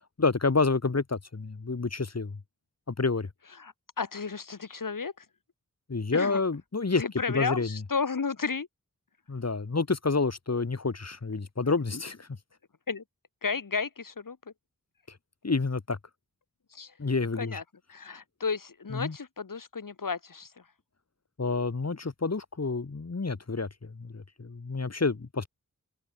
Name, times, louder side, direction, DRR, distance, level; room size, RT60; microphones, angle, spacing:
voice 1, 0.2-2.4 2.9-3.3 5.9-7.0 7.3-7.8 9.3-12.3 15.4-16.0 17.0-17.6 18.9-19.2 21.4-25.5, left 4 dB, 50° left, 3.0 m, -29 dB
voice 2, 3.6-5.2 6.1-6.4 7.0-8.7 12.9-13.0 13.4-14.4 16.7-16.9 17.4-17.6 17.9-20.5, left 5 dB, 70° left, 4.0 m, -33 dB
open air
cardioid pair, 45°, 33 cm